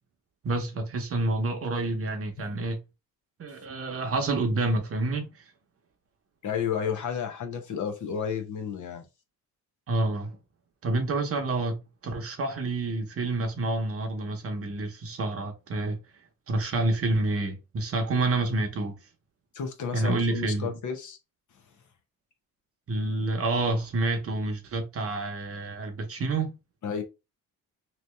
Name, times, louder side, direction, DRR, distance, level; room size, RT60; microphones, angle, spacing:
voice 1, 0.4-2.8 3.4-5.5 9.9-10.4 10.8-16.0 16.5-18.9 19.9-20.8 22.9-26.5, right 2 dB, 40° right, 0.9 m, -28 dB
voice 2, 6.4-9.1 19.5-21.2 26.8-27.0, left 7 dB, 55° left, 0.8 m, -31 dB
3.1 x 2.7 x 3.2 m
cardioid pair, 140°, 36 cm